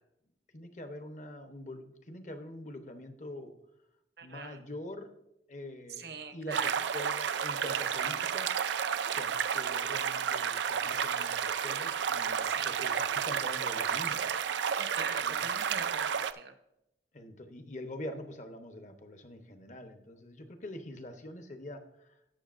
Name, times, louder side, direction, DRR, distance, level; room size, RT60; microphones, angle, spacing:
voice 1, 0.5-3.5 4.2-5.1 5.5-8.6 9.1-14.4 15.2-15.4 17.1-22.2, left 1 dB, 40° left, 7 dB, 0.9 m, -45 dB
voice 2, 4.2-4.6 6.0-6.7 12.4-12.8 14.8-16.5, right 4 dB, 60° right, 8 dB, 0.9 m, -42 dB
sound 1, 6.5-16.3, right 7 dB, 75° right, 0.4 m, -31 dB
17.5 x 6.4 x 2.5 m, 0.82 s
head